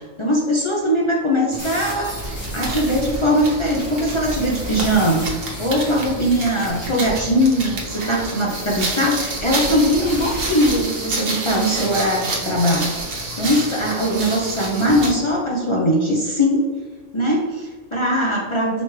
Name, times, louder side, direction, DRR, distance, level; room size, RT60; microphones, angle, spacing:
voice 1, 0.0-12.9 13.4-16.7 17.1-18.8, equal, 35° left, -3 dB, 0.5 m, -20 dB
sound 1, 1.5-15.2, right 2 dB, 75° right, 1.3 m, -29 dB
sound 2, 1.6-7.1 8.5-13.0, equal, 70° left, 2.0 m, -34 dB
4.9 x 3.4 x 3.2 m, 1.4 s
omnidirectional pair, 1.3 m